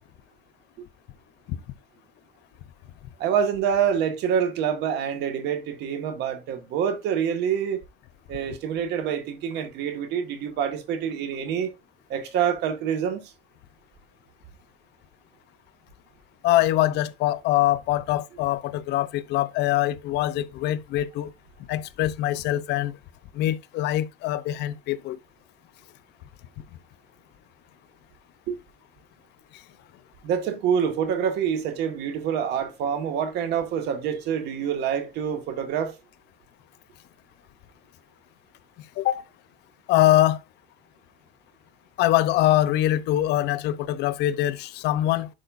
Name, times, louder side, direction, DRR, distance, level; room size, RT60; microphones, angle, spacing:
voice 1, 3.2-7.8 8.3-11.7 12.1-13.2 28.5-28.6 30.2-35.9, right 8 dB, 85° right, 1.8 m, -26 dB
voice 2, 16.4-21.3 21.7-22.9 23.3-25.2 39.0-39.2 39.9-40.4 42.0-45.3, left 14 dB, 85° left, 0.8 m, -23 dB
11.0 x 5.0 x 2.6 m
cardioid pair, 110°, 17 cm